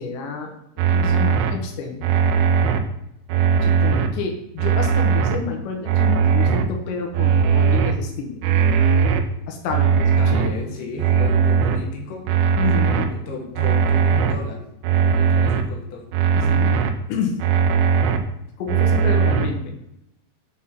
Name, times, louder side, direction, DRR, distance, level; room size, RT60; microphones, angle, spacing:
voice 1, 0.0-2.1 3.6-8.4 9.5-10.5 12.6-13.1 16.3-16.8 17.1-17.4 18.6-19.8, left 5 dB, 85° left, 3 dB, 3.5 m, -29 dB
sound 1, 0.8-1.5 2.0-2.8 3.3-4.1 4.6-5.4 5.9-6.6 7.1-7.9 8.4-9.2 9.7-10.5 11.0-11.8 12.3-13.1 13.6-14.3 14.8-15.6 16.1-16.9 17.4-18.2 18.7-19.5, right 6 dB, 80° right, 2.3 m, -18 dB
voice 2, 10.2-12.3 13.1-14.6 15.0-16.1, left 3 dB, 65° left, 2 dB, 2.5 m, -34 dB
8.2 x 4.2 x 5.9 m, 0.84 s
omnidirectional pair, 5.0 m